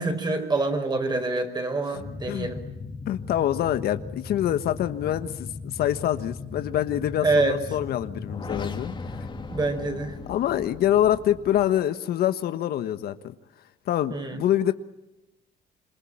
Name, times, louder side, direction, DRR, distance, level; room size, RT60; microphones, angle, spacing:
voice 1, 0.0-2.6 7.2-7.6 9.5-10.1 14.1-14.4, right 3 dB, 25° right, 7 dB, 4.9 m, -26 dB
voice 2, 1.9-2.5 3.1-9.3 10.3-13.3 13.9-14.7, left 11 dB, 65° left, 11 dB, 1.3 m, -26 dB
sound 1, 1.9-11.7, left 4 dB, 30° left, 2.8 m, -37 dB
26.5 x 23.5 x 8.8 m, 0.92 s
cardioid pair, 110°, 17 cm